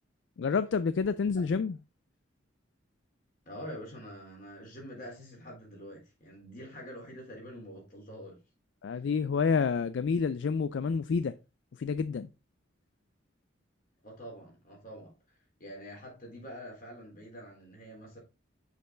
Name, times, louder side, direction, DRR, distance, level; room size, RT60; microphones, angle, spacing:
voice 1, 0.4-1.8 8.8-11.4 11.8-12.3, left 5 dB, 65° left, 0.4 m, -28 dB
voice 2, 3.5-8.4 14.0-15.1 15.6-18.2, equal, 45° left, 3.6 m, -46 dB
6.7 x 5.4 x 3.8 m
head